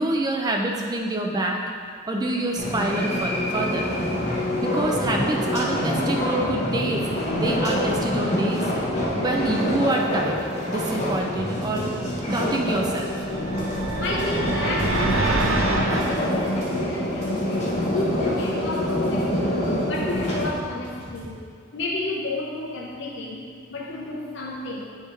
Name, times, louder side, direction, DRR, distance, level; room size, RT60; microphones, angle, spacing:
voice 1, 0.0-1.6 2.1-3.9 4.6-8.7 9.1-10.4 10.7-11.9 12.3-13.1 18.0-18.1, right 1 dB, 20° right, 1 dB, 0.4 m, -26 dB
sound 1, 2.6-20.5, left 1 dB, 35° left, 1.0 m, -26 dB
sound 2, 9.9-11.2 11.6-21.3, right 1 dB, 55° right, 1.5 m, -43 dB
sound 3, 13.3-16.2, right 2 dB, 90° right, 0.7 m, -25 dB
voice 2, 14.0-17.5 17.9-19.6 19.9-21.4 21.7-24.9, left 2 dB, 60° left, -3 dB, 0.7 m, -32 dB
8.1 x 3.5 x 4.2 m, 2.2 s
head